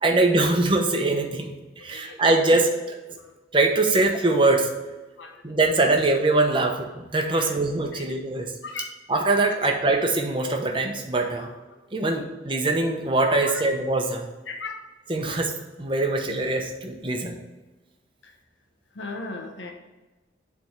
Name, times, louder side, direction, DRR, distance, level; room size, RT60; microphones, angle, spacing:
voice 1, 0.0-3.0 3.5-4.7 5.4-8.5 9.1-11.5 11.9-14.3 15.1-17.3, right 2 dB, 25° right, 3 dB, 0.8 m, -23 dB
voice 2, 1.8-2.2 3.2-3.3 5.2-5.4 6.7-6.8 7.3-7.5 7.9-8.2 8.6-9.0 11.4-11.6 11.8-12.2 13.3-13.6 14.5-14.9 18.2-18.3 18.9-19.7, left 3 dB, 75° left, 3 dB, 1.0 m, -38 dB
7.5 x 3.5 x 5.5 m, 1.1 s
head